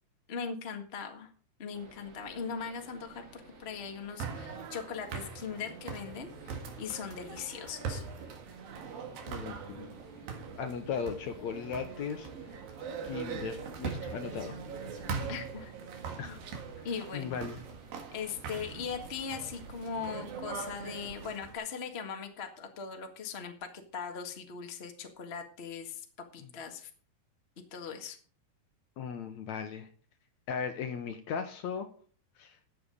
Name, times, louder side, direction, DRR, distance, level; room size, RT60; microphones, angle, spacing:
voice 1, 0.3-1.3 1.6-8.0 15.3-15.7 16.2-16.5 16.8-17.4 18.1-26.0 26.3-26.9 27.7-28.2, left 6 dB, 35° left, 4 dB, 0.9 m, -40 dB
sound 1, 1.7-21.4, right 4 dB, 65° right, 4.5 m, -55 dB
sound 2, 4.2-21.6, right 5 dB, 80° right, 3.6 m, -41 dB
voice 2, 9.3-9.9 10.6-12.3 13.0-14.6 16.2-16.4 17.1-17.6 29.0-29.9 30.5-31.9 32.4-32.6, left 6 dB, 70° left, 8 dB, 1.9 m, -37 dB
13.5 x 8.3 x 5.2 m, 0.42 s
omnidirectional pair, 4.0 m